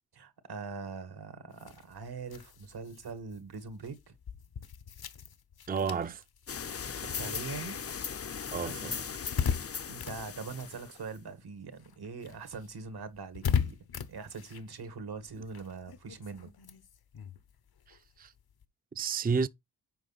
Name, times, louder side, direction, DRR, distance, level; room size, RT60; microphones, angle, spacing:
voice 1, 0.1-4.1 6.9-7.8 9.9-13.8 14.1-16.5, right 4 dB, 75° right, 1.7 m, -42 dB
sound 1, 1.5-11.4 11.7-18.7, left 7 dB, 70° left, 1.0 m, -39 dB
voice 2, 5.7-6.2 8.5-9.1 17.9-18.3 19.0-19.5, right 5 dB, 25° right, 0.5 m, -31 dB
sound 2, 6.5-11.2, left 7 dB, 40° left, 0.6 m, -38 dB
7.9 x 5.1 x 4.1 m
cardioid pair, 55°, 38 cm